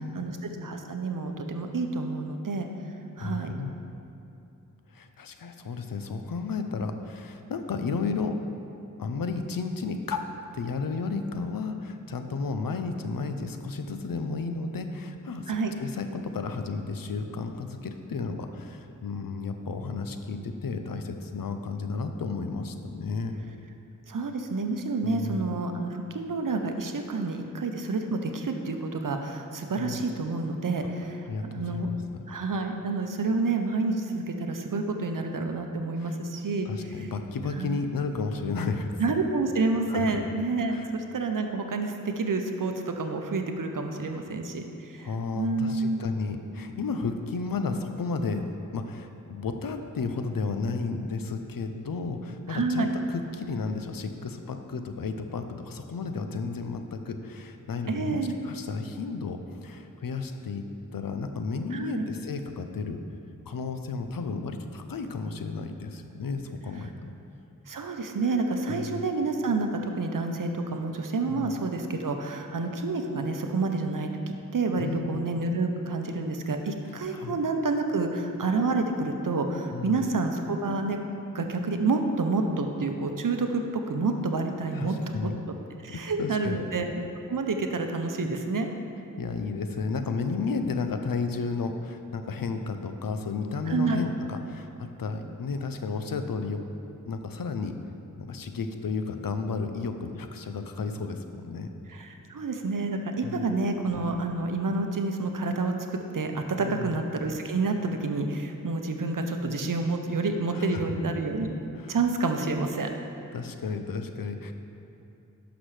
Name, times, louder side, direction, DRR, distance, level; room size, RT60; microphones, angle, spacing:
voice 1, 0.1-2.7 3.2-3.6 15.5-15.7 24.1-31.9 32.3-36.7 37.6-37.8 39.0-44.6 44.9-45.1 45.3-46.0 52.5-52.9 57.9-58.3 61.7-62.1 67.7-74.1 74.5-81.0 81.3-83.6 83.9-84.9 85.5-85.6 85.8-86.9 87.3-88.7 93.7-94.0 101.9-105.7 106.1-111.5 111.9-112.9, right 3 dB, 70° right, 5 dB, 0.7 m, -29 dB
voice 2, 3.2-3.8 4.9-8.4 9.0-23.4 25.0-25.6 29.8-30.0 31.2-32.2 36.0-36.2 36.6-38.9 39.9-40.2 40.7-40.9 44.1-44.3 45.0-48.5 48.7-63.0 63.5-66.9 68.7-69.0 71.3-71.5 74.8-75.2 76.8-77.4 79.7-80.0 84.7-85.4 85.9-86.6 89.2-96.7 97.1-97.7 98.2-101.7 103.2-103.5 106.6-107.0 110.5-110.8 111.7-112.0 113.3-114.5, left 4 dB, 85° left, 7 dB, 0.6 m, -33 dB
11.5 x 6.0 x 3.2 m, 2.8 s
wide cardioid pair, 50°, 33 cm